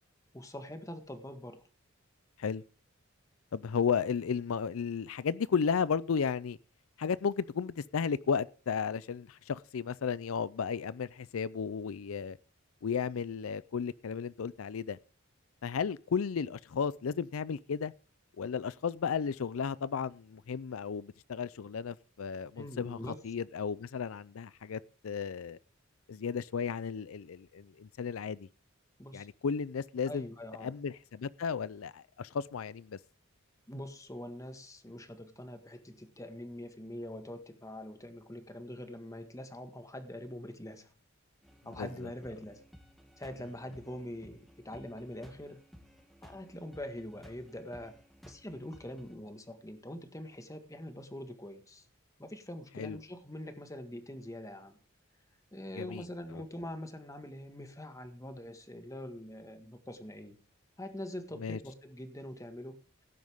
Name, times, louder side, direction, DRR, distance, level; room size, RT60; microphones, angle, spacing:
voice 1, 0.3-1.6 22.5-23.1 29.0-29.3 30.1-30.7 33.7-40.9 41.6-42.6 43.2-45.6 46.2-51.9 52.2-54.8 55.5-60.4 60.8-62.8, left 1 dB, 15° left, 1.6 m, -44 dB
voice 2, 3.5-6.6 7.0-12.4 12.8-15.0 15.6-17.9 18.4-25.6 26.1-28.5 29.1-30.2 30.6-33.0 41.8-41.9 52.8-53.0 55.8-56.0 61.4-61.6, left 6 dB, 85° left, 0.5 m, -34 dB
sound 1, 41.4-49.2, equal, ahead, 2.0 m, -57 dB
17.0 x 9.5 x 3.6 m
head